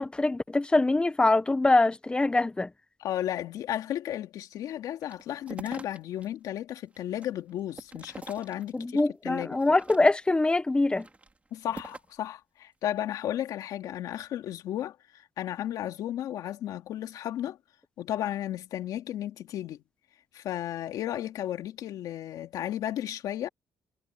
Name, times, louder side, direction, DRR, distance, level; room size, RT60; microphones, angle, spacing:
voice 1, 0.0-2.7 8.7-11.1, left 2 dB, 15° left, 1.0 m, -24 dB
voice 2, 3.0-9.6 11.5-17.6 18.0-19.8 20.3-23.5, left 12 dB, 80° left, 2.5 m, -34 dB
sound 1, 5.0-6.3 6.7-9.0 9.5-10.4 10.9-12.2, right 3 dB, 20° right, 3.6 m, -45 dB
cardioid pair, 95°, 6 cm